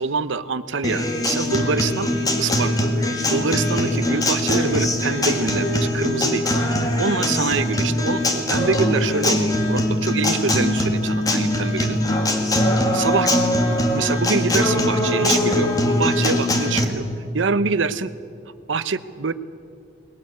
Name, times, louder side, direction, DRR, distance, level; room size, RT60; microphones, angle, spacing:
voice 1, 0.0-2.1 2.4-6.5 7.0-12.0 12.9-13.3 13.7-17.0 17.3-18.1 18.7-19.3, right 4 dB, 75° right, 14 dB, 0.8 m, -25 dB
Acoustic guitar, 0.8-16.8, left 1 dB, 20° left, 1.9 m, -21 dB
21.0 x 17.5 x 8.3 m, 2.6 s
head